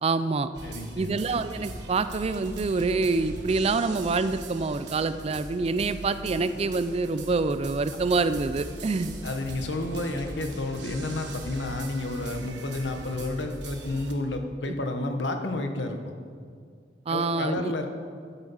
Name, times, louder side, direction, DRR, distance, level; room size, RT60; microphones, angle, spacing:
voice 1, 0.0-0.5 1.0-9.2 14.7-14.8 17.1-17.7, right 3 dB, 35° right, 12 dB, 0.4 m, -26 dB
sound 1, 0.5-14.1, right 2 dB, 70° right, 1.2 m, -40 dB
voice 2, 0.6-1.1 9.2-16.1 17.1-17.9, left 2 dB, 75° left, 5 dB, 1.0 m, -31 dB
12.0 x 8.2 x 5.6 m, 2.2 s
head